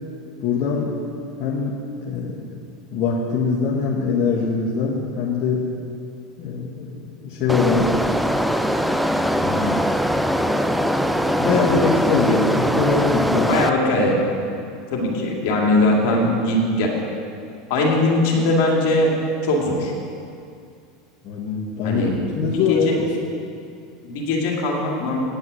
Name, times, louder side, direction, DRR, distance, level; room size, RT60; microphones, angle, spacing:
voice 1, 0.4-0.9 1.4-2.4 2.9-5.6 6.4-7.9 11.3-13.5 21.2-22.0 22.3-23.1, left 4 dB, 45° left, -6 dB, 1.6 m, -22 dB
sound 1, 7.5-13.7, equal, ahead, 0.4 m, -21 dB
voice 2, 13.4-14.2 14.9-16.9 17.7-19.1 19.4-19.9 21.8-22.1 22.7-22.9 24.0-25.2, left 2 dB, 60° left, -2 dB, 2.2 m, -20 dB
9.3 x 5.6 x 8.2 m, 2.4 s
hypercardioid pair, 90°, 0 cm